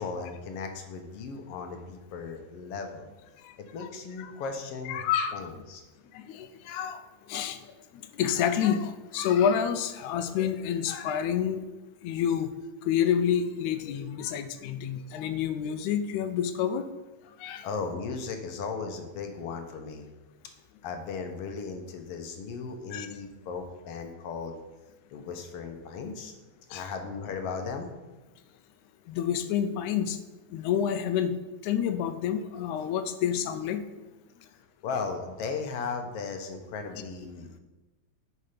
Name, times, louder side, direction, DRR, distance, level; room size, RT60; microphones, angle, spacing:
voice 1, 0.0-3.1 3.6-5.1 5.3-5.8 17.6-20.1 20.8-24.6 25.1-26.3 26.7-27.9 34.5-34.6 34.8-37.6, left 5 dB, 65° left, 5 dB, 1.6 m, -36 dB
voice 2, 4.9-5.6 6.1-7.0 7.3-7.6 7.9-11.6 12.0-12.5 12.8-16.8 17.4-17.7 22.9-23.1 26.7-26.8 29.1-30.2 30.5-31.3 31.6-33.8, left 8 dB, 85° left, 9 dB, 2.0 m, -28 dB
9.9 x 4.9 x 5.0 m, 1.1 s
omnidirectional pair, 3.4 m